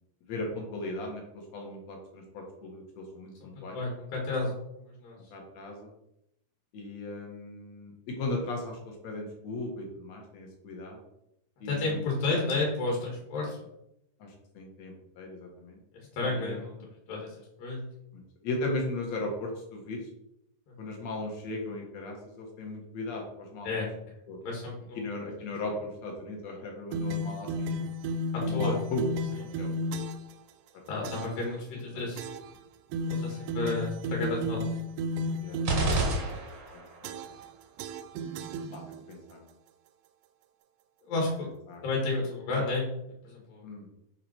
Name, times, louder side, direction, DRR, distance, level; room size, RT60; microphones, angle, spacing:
voice 1, 0.3-3.8 5.3-5.9 6.7-11.0 11.6-12.0 14.2-15.8 16.2-16.6 18.1-20.0 20.8-23.8 24.3-24.4 24.9-27.8 28.4-29.1 29.4-29.7 31.2-31.3 31.8-32.0 33.3-33.6 35.4-35.6 35.9-36.5 36.7-37.3 38.7-39.4 41.7-41.8 43.6-43.9, left 2 dB, 55° left, 0 dB, 2.5 m, -37 dB
voice 2, 3.7-4.6 5.0-5.2 11.7-13.6 16.1-16.7 17.1-17.9 20.8-20.9 23.6-23.9 24.4-25.0 28.5-28.7 30.9-32.3 33.1-34.7 41.1-41.5 41.8-42.9 43.2-43.7, left 3 dB, 90° left, -1 dB, 3.2 m, -31 dB
sound 1, 26.9-30.3 31.0-31.4 32.2-32.6 32.9-36.4 37.0-37.5 37.8-39.1, left 1 dB, 80° right, 2.0 m, -33 dB
sound 2, 35.6-37.0, right 3 dB, 50° right, 1.4 m, -28 dB
6.9 x 4.9 x 4.5 m, 0.80 s
omnidirectional pair, 3.9 m